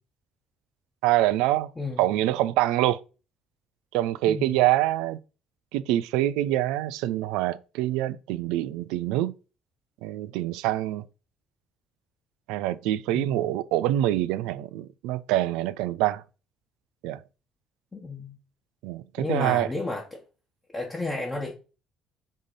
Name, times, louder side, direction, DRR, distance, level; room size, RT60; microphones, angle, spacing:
voice 1, 1.0-1.7 2.0-3.0 3.9-5.2 5.7-9.3 10.0-11.0 12.5-16.2 17.0-17.2 18.8-19.7, right 14 dB, 65° right, 0.4 m, -25 dB
voice 2, 13.1-13.5 17.9-18.4 19.2-20.2 20.7-21.5, left 2 dB, 20° left, 1.5 m, -32 dB
5.1 x 3.6 x 5.5 m
figure-of-eight pair, 50°, 0 cm